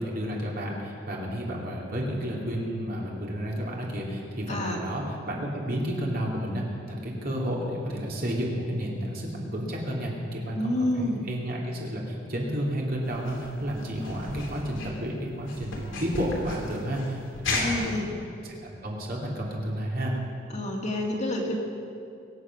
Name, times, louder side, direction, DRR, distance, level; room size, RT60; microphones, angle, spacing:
voice 1, 0.0-20.1, equal, 50° right, -3 dB, 3.0 m, -31 dB
voice 2, 4.5-4.8 10.6-11.2 17.6-18.1 20.5-21.6, left 1 dB, 35° left, 0 dB, 2.1 m, -28 dB
sound 1, 13.0-18.0, left 2 dB, 80° left, 3.0 m, -35 dB
23.5 x 8.2 x 6.2 m, 2.5 s
head